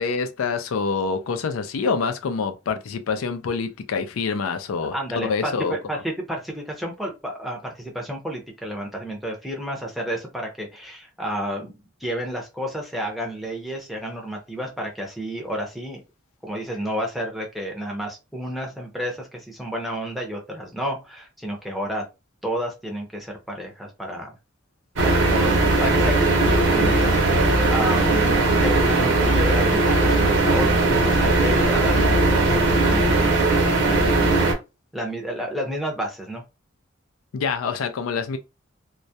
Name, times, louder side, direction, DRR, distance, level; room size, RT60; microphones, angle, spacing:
voice 1, 0.0-5.8 37.3-38.4, left 5 dB, 90° left, 0.4 m, -26 dB
voice 2, 4.9-11.7 12.0-16.0 16.4-22.0 22.4-24.3 25.0-33.2 34.9-36.4, equal, ahead, 0.6 m, -31 dB
sound 1, 25.0-34.5, right 2 dB, 65° right, 0.8 m, -19 dB
2.2 x 2.0 x 2.7 m
head